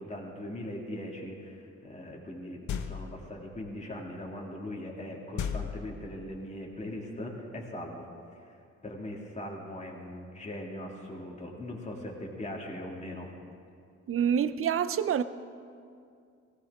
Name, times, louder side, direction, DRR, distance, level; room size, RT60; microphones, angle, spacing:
voice 1, 0.0-2.6 2.8-8.1 8.4-8.6 8.8-13.3, left 1 dB, 25° left, 2.6 m, -40 dB
sound 1, 2.7-3.3 5.4-6.4, left 7 dB, 70° left, 1.0 m, -35 dB
voice 2, 14.1-15.2, right 8 dB, 45° right, 0.6 m, -26 dB
19.0 x 16.0 x 3.7 m
cardioid pair, 90°, 30 cm